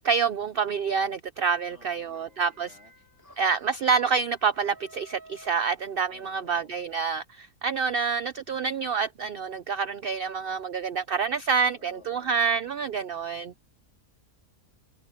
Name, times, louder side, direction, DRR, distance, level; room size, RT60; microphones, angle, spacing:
voice 1, 0.0-2.8 3.4-13.5, right 6 dB, 60° right, 0.6 m, -27 dB
voice 2, 1.7-2.9 3.2-3.7 6.1-6.7 11.8-12.5, left 4 dB, 50° left, 3.7 m, -55 dB
sound 1, 1.7-6.5, right 2 dB, 15° right, 6.0 m, -54 dB
omnidirectional pair, 1.5 m